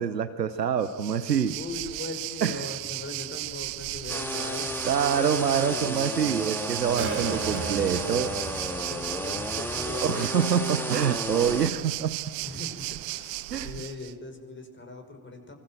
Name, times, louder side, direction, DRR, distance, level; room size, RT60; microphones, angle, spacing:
voice 1, 0.0-1.6 2.4-2.7 4.8-8.3 10.0-12.2 13.5-13.7, right 7 dB, 85° right, 12 dB, 0.9 m, -26 dB
Waves surf, 0.8-14.1, right 22 dB, 60° right, 1.0 m, -35 dB
voice 2, 1.6-4.8 5.1-6.4 8.9-10.3 12.4-15.6, left 3 dB, 25° left, 5 dB, 5.7 m, -40 dB
sound 1, 2.4-10.1, right 3 dB, 25° right, 4.3 m, -39 dB
sound 2, 4.1-11.7, left 1 dB, 5° left, 2.5 m, -33 dB
25.5 x 24.5 x 7.9 m, 1.5 s
figure-of-eight pair, 55°, 48 cm